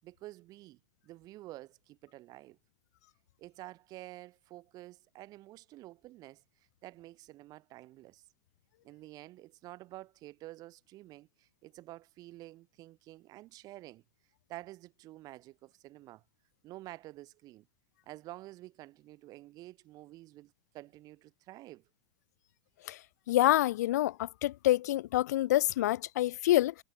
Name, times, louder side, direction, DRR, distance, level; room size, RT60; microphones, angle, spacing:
voice 1, 0.0-2.6 3.4-6.4 6.8-8.2 8.8-14.0 14.5-16.2 16.6-17.7 18.1-21.8, right 17 dB, 45° right, 7.8 m, -50 dB
voice 2, 23.3-26.7, left 15 dB, 80° left, 0.9 m, -27 dB
supercardioid pair, 125°, 9 cm